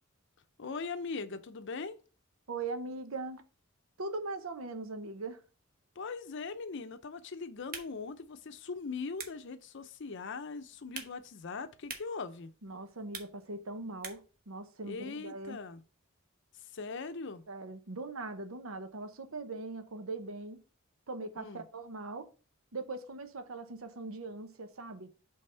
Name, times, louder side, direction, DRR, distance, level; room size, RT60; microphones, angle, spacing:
voice 1, 0.6-2.0 6.0-12.5 14.8-15.8 16.6-17.4 21.4-21.6, left 4 dB, 60° left, 0.6 m, -40 dB
voice 2, 2.5-3.4 4.0-5.4 12.6-15.6 17.5-20.6 21.1-22.3 22.7-25.1, right 3 dB, 85° right, 0.9 m, -40 dB
sound 1, 7.5-14.4, right 5 dB, 45° right, 1.1 m, -49 dB
5.5 x 3.5 x 5.4 m
head